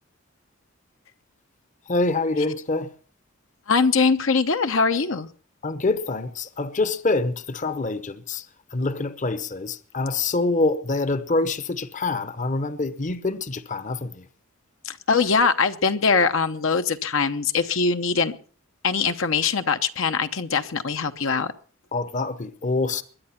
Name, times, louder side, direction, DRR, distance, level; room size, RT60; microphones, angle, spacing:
voice 1, 1.9-2.9 5.6-8.5 8.7-14.3 21.9-23.0, left 3 dB, 35° left, 0.9 m, -25 dB
voice 2, 3.7-5.3 14.8-18.3 18.8-21.5, left 5 dB, 65° left, 0.9 m, -22 dB
21.5 x 9.9 x 5.8 m
head